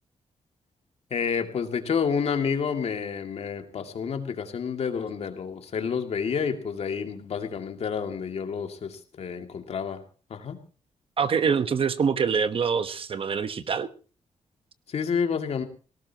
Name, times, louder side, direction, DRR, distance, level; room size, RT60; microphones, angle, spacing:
voice 1, 1.1-10.0 10.3-10.6 14.9-15.6, left 6 dB, 60° left, 5 dB, 2.3 m, -29 dB
voice 2, 11.2-13.9, right 6 dB, 50° right, 11 dB, 1.1 m, -25 dB
18.5 x 18.0 x 2.9 m, 0.37 s
wide cardioid pair, 130°, 12 cm